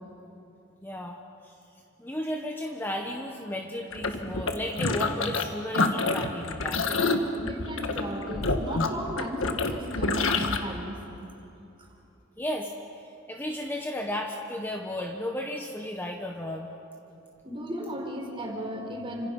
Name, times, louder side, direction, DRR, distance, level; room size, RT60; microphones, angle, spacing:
voice 1, 0.8-1.2 1.4-1.5 2.0-6.8 12.4-12.7 13.3-16.7, left 1 dB, 10° left, 1 dB, 1.3 m, -34 dB
sound 1, 3.9-5.5 5.7-10.6, left 3 dB, 80° left, 1.7 m, -27 dB
voice 2, 7.4-11.0 11.8-11.9 17.4-19.3, equal, 25° right, 1 dB, 4.6 m, -35 dB
30.0 x 26.5 x 5.6 m, 2.8 s
head